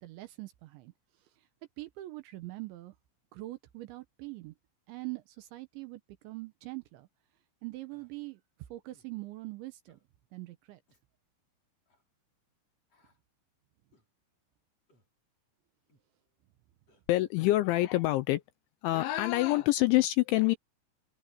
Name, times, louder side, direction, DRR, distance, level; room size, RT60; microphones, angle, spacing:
voice 1, 0.0-0.9 1.8-2.9 3.3-4.5 4.9-7.1 7.6-8.4 8.7-10.0 10.3-10.8, right 20 dB, 75° right, 2.9 m, -43 dB
Human voice, 7.9-8.1 8.9-9.1 9.9-10.1 10.9-11.1 11.9-12.0 12.9-13.2 13.9-14.1 14.9-15.1 15.9-16.1 16.9-17.0, left 1 dB, 30° left, 7.3 m, -69 dB
voice 2, 17.1-18.4 18.8-20.6, left 17 dB, 80° left, 2.8 m, -26 dB
open air
omnidirectional pair, 6.0 m